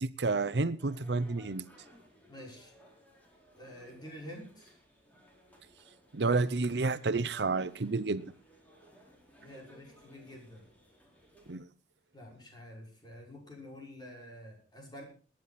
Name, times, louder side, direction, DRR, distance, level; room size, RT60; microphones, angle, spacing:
voice 1, 0.0-1.6 6.1-8.2 11.5-11.7, right 3 dB, 70° right, 15 dB, 0.8 m, -30 dB
sound 1, 0.8-11.6, equal, 10° left, 4.4 m, -60 dB
voice 2, 2.3-2.7 3.5-4.8 9.4-10.6 12.1-15.0, left 1 dB, 25° left, 0 dB, 5.9 m, -48 dB
22.0 x 10.5 x 4.2 m, 0.36 s
head